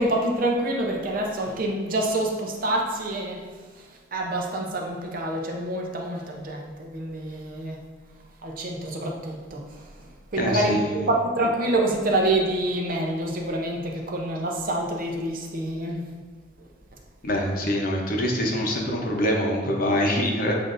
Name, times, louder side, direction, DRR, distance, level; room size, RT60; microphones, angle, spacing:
voice 1, 0.0-3.5 3.8-7.8 8.4-16.0 16.6-16.7, right 1 dB, 50° right, 1 dB, 0.6 m, -27 dB
voice 2, 10.4-10.9 17.2-20.5, equal, 50° left, 0 dB, 0.7 m, -24 dB
7.2 x 2.6 x 2.5 m, 1.5 s
head